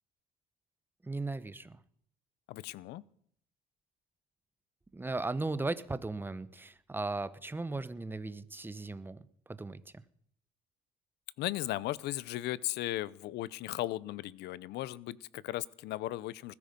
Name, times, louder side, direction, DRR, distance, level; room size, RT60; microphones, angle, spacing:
voice 1, 1.0-1.8 4.9-9.2 9.5-10.0, right 3 dB, 10° right, 15 dB, 0.9 m, -37 dB
voice 2, 2.5-3.0 11.4-16.5, left 16 dB, 80° left, 21 dB, 0.7 m, -36 dB
20.5 x 13.0 x 5.3 m, 0.67 s
cardioid pair, 110°, 17 cm